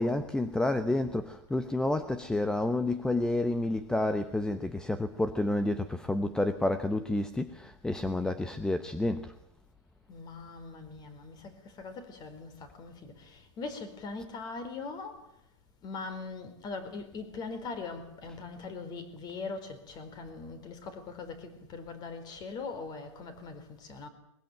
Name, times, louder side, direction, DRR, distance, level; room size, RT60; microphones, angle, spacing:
voice 1, 0.0-9.3, left 2 dB, 5° left, 0.9 m, -29 dB
voice 2, 10.1-15.3 15.8-24.1, left 4 dB, 30° left, 4.2 m, -41 dB
22.0 x 21.5 x 9.1 m
supercardioid pair, 145°, 15 cm